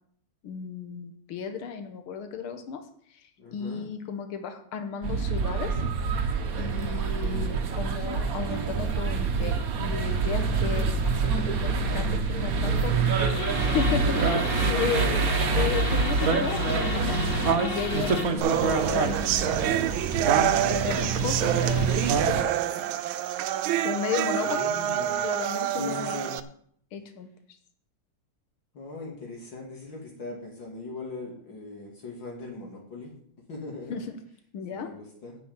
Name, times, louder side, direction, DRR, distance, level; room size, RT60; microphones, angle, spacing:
voice 1, 0.4-2.8 3.5-5.8 6.6-13.0 13.6-17.2 17.6-19.8 20.6-22.8 23.8-24.7 25.2-26.2 26.9-27.3 33.9-34.2 34.5-34.9, left 6 dB, 85° left, 7 dB, 2.0 m, -34 dB
voice 2, 3.4-3.9 7.0-7.6 14.6-15.2 24.4-25.2 25.8-26.4 28.7-33.1 33.5-33.9 34.7-35.4, left 3 dB, 60° left, -2 dB, 3.1 m, -40 dB
sound 1, 5.0-22.4, right 4 dB, 50° right, 1.3 m, -26 dB
sound 2, 13.1-18.4, left 2 dB, 40° left, 2.1 m, -34 dB
sound 3, 18.4-26.4, right 11 dB, 80° right, 1.5 m, -27 dB
10.0 x 6.2 x 8.7 m, 0.63 s
omnidirectional pair, 2.3 m